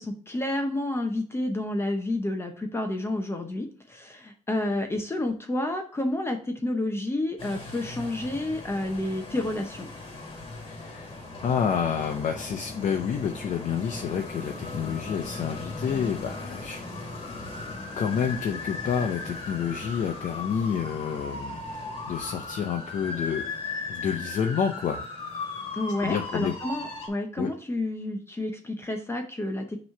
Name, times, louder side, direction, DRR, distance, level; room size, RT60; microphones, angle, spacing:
voice 1, 0.0-9.9 25.7-29.8, left 1 dB, 20° left, 4 dB, 0.7 m, -30 dB
sound 1, 7.4-27.1, left 3 dB, 45° left, 1.8 m, -37 dB
voice 2, 10.7-11.1 11.4-16.8 18.0-23.4 23.9-25.0 26.0-26.5 27.4-27.5, left 7 dB, 70° left, 4 dB, 0.7 m, -29 dB
6.0 x 3.1 x 5.5 m, 0.42 s
wide cardioid pair, 150°, 13 cm